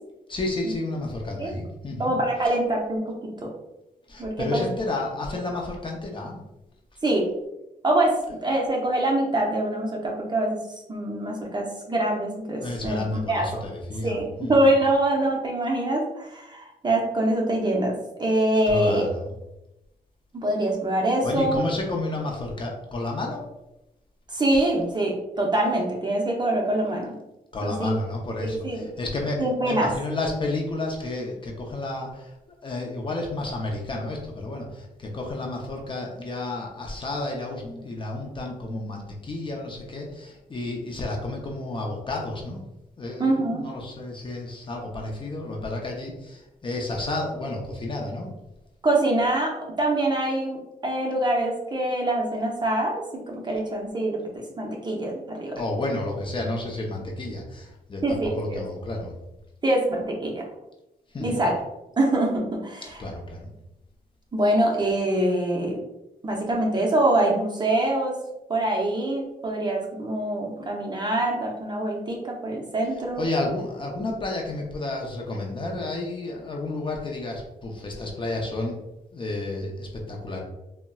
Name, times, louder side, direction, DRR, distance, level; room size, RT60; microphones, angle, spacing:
voice 1, 0.3-2.1 4.1-6.4 12.6-14.7 18.7-19.3 21.2-23.5 27.5-32.3 32.6-42.7 43.0-48.3 55.5-59.1 61.1-61.4 63.0-63.5 73.2-78.8 79.1-80.4, left 2 dB, 35° left, 0 dB, 0.5 m, -31 dB
voice 2, 2.0-3.1 4.2-4.6 7.0-7.3 7.8-10.6 10.9-13.0 13.3-13.6 14.0-19.1 20.3-21.6 24.3-27.2 27.6-28.0 28.4-28.9 29.4-29.9 43.2-43.7 48.8-54.2 54.6-55.6 58.0-58.6 59.6-60.4 61.2-61.5 62.0-62.9 64.3-65.8 66.2-68.1 68.5-73.2, right 1 dB, 30° right, -1 dB, 0.6 m, -24 dB
3.7 x 2.1 x 2.2 m, 0.93 s
cardioid pair, 110°, 16 cm